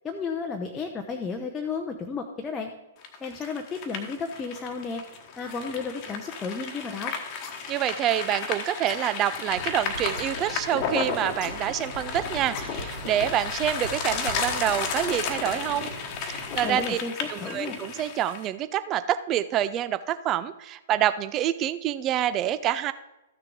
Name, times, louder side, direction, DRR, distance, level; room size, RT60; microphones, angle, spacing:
voice 1, 0.0-2.7 3.2-5.0 5.4-7.1 16.6-17.8, left 4 dB, 15° left, 2 dB, 0.7 m, -33 dB
sound 1, 3.0-18.5, left 5 dB, 30° left, 1.2 m, -33 dB
voice 2, 7.7-15.9 16.2-17.0 17.3-22.9, right 11 dB, 25° right, 13 dB, 0.5 m, -27 dB
sound 2, 9.5-16.9, right 1 dB, 80° left, 1.2 m, -42 dB
13.5 x 6.6 x 3.7 m, 1.0 s
figure-of-eight pair, 115°, 0 cm